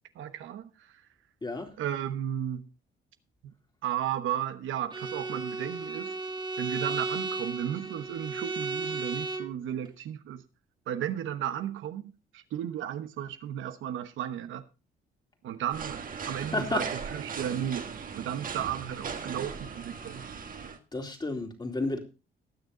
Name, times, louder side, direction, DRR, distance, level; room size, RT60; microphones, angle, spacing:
voice 1, 0.1-1.0 1.8-2.7 3.4-3.5 3.8-6.1 6.6-10.4 10.9-14.6 15.4-16.8 17.1-20.3, right 10 dB, 80° right, 1.1 m, -34 dB
voice 2, 1.4-1.7 16.5-16.9 20.9-22.0, left 2 dB, 20° left, 2.7 m, -31 dB
Bowed string instrument, 4.9-9.6, right 3 dB, 25° right, 2.1 m, -34 dB
sound 1, 15.7-20.8, right 6 dB, 45° right, 1.5 m, -38 dB
19.0 x 6.5 x 3.9 m
cardioid pair, 90°, 20 cm